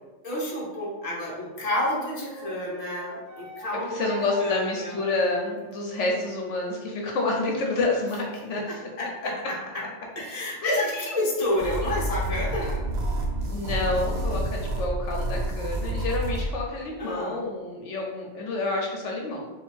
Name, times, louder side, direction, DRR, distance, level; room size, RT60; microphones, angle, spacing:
voice 1, 0.2-4.9 8.6-9.6 10.2-12.9 17.0-17.4, left 1 dB, 30° left, -4 dB, 1.0 m, -30 dB
Wind instrument woodwind instrument, 1.6-6.9, right 4 dB, 75° right, 0.9 m, -44 dB
voice 2, 3.9-8.8 10.6-10.9 13.5-19.5, left 2 dB, 75° left, -1 dB, 1.0 m, -28 dB
Official Here We Rise Sound Track, 11.6-16.5, right 1 dB, 55° right, 0.5 m, -29 dB
3.8 x 2.3 x 4.2 m, 1.2 s
omnidirectional pair, 1.3 m